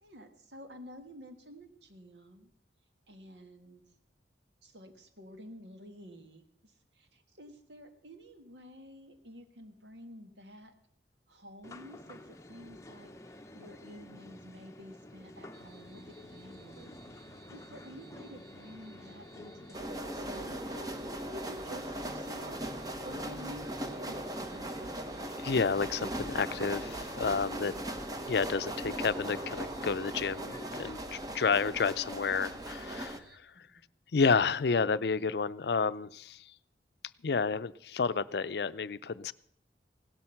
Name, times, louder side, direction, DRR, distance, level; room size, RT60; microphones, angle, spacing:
voice 1, 0.0-2.5 3.1-3.8 4.6-10.7 11.3-22.7 23.0-25.0 33.5-33.6, equal, 80° right, 6 dB, 1.9 m, -50 dB
sound 1, 11.6-30.9, left 1 dB, 15° left, 0.7 m, -50 dB
sound 2, 15.5-33.4, right 2 dB, 55° right, 1.3 m, -59 dB
sound 3, 19.7-33.2, right 1 dB, 20° right, 1.0 m, -39 dB
voice 2, 25.4-27.7 28.3-33.7 34.1-36.5 37.2-39.3, left 5 dB, 65° left, 15 dB, 0.5 m, -30 dB
17.0 x 12.5 x 5.8 m, 0.64 s
head